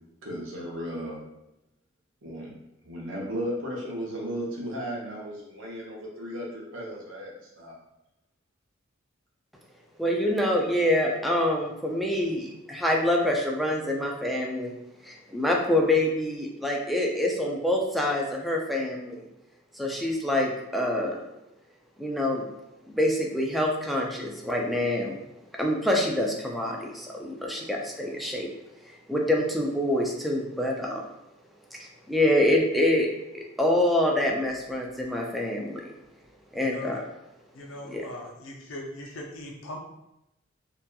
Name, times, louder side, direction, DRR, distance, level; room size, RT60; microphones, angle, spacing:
voice 1, 0.2-1.2 2.2-2.5 2.8-7.7, equal, 85° right, -3 dB, 0.8 m, -35 dB
voice 2, 10.0-14.7 15.0-19.2 19.8-21.2 22.0-22.5 22.9-25.2 25.6-28.5 29.1-31.0 31.8-33.1 33.3-35.9 36.5-37.1 37.8-38.1, left 1 dB, ahead, -1 dB, 0.3 m, -26 dB
voice 3, 36.5-37.0 37.5-39.8, left 1 dB, 90° left, 0 dB, 0.5 m, -40 dB
2.8 x 2.3 x 2.2 m, 0.88 s
head